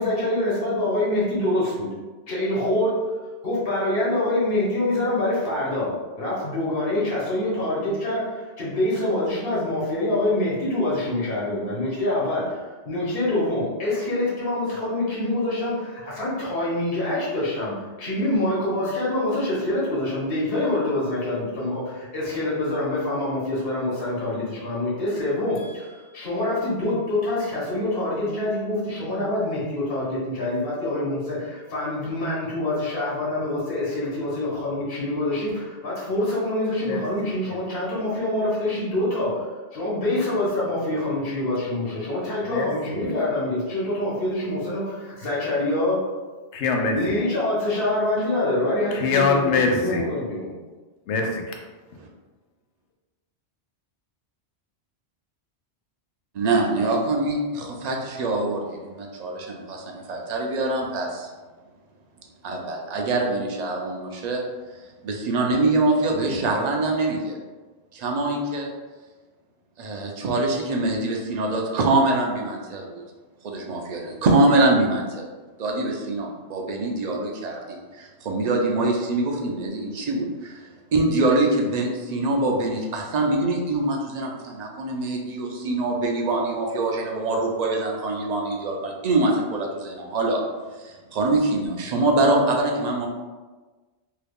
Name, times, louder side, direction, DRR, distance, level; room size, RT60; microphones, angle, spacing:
voice 1, 0.0-1.9 2.3-3.0 3.4-5.9 6.2-46.0 46.9-49.2 49.8-50.0, left 1 dB, 60° left, -7 dB, 1.2 m, -25 dB
voice 2, 25.6-26.4 36.8-37.1 37.5-37.6 42.4-43.1 46.5-47.2 47.9-50.1 51.1-52.0, left 4 dB, 90° left, 2 dB, 0.9 m, -26 dB
voice 3, 56.3-61.3 62.4-64.4 65.0-67.4 67.9-68.7 69.8-73.0 73.4-75.2 75.6-80.6 80.9-90.4 90.8-93.1, right 2 dB, 55° right, 0 dB, 0.5 m, -24 dB
2.8 x 2.3 x 3.4 m, 1.3 s
omnidirectional pair, 1.1 m